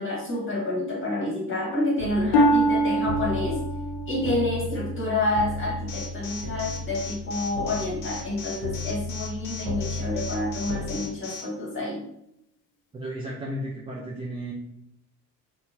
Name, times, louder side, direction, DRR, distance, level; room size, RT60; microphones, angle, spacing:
voice 1, 0.0-3.6 4.1-12.0, left 2 dB, 25° left, -3 dB, 1.2 m, -28 dB
sound 1, 2.0-11.0, left 2 dB, 70° right, 1.1 m, -35 dB
Harp, 2.3-6.1 6.6-7.0 7.7-7.8, right 1 dB, 50° left, 0.5 m, -25 dB
Alarm, 5.9-11.4, left 6 dB, 85° left, 0.8 m, -38 dB
voice 2, 12.9-14.5, right 1 dB, 10° right, -3 dB, 0.4 m, -34 dB
2.8 x 2.3 x 2.7 m, 0.80 s
hypercardioid pair, 65°, 50 cm